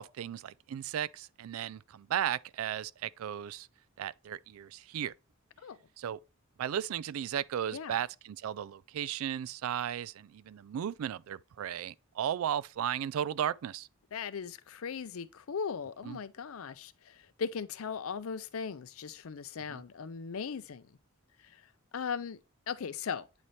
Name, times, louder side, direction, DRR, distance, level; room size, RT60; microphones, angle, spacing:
voice 1, 0.0-3.7 4.0-5.1 6.0-6.2 6.6-13.9 16.0-16.2 19.7-19.8, right 9 dB, 75° right, 0.3 m, -35 dB
voice 2, 14.1-20.8 21.4-21.6 21.9-22.4 22.7-23.3, left 6 dB, 75° left, 0.5 m, -38 dB
8.9 x 4.1 x 3.1 m
head